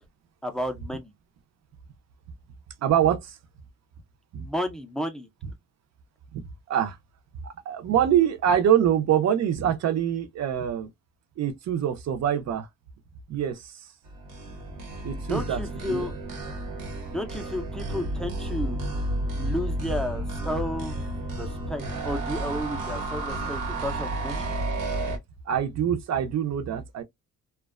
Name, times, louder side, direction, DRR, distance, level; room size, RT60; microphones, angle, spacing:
voice 1, 0.4-1.1 4.4-5.3 15.3-16.1 17.1-18.8 19.4-21.0 21.3-24.5, left 1 dB, ahead, 0.3 m, -32 dB
voice 2, 2.8-3.4 4.3-4.5 6.3-6.4 6.7-7.0 7.7-10.9 11.4-12.7 13.3-13.9 15.0-16.1 25.5-27.0, right 10 dB, 55° right, 0.5 m, -24 dB
sound 1, 14.1-25.2, right 1 dB, 90° right, 1.1 m, -32 dB
2.4 x 2.2 x 2.3 m
wide cardioid pair, 165°, 32 cm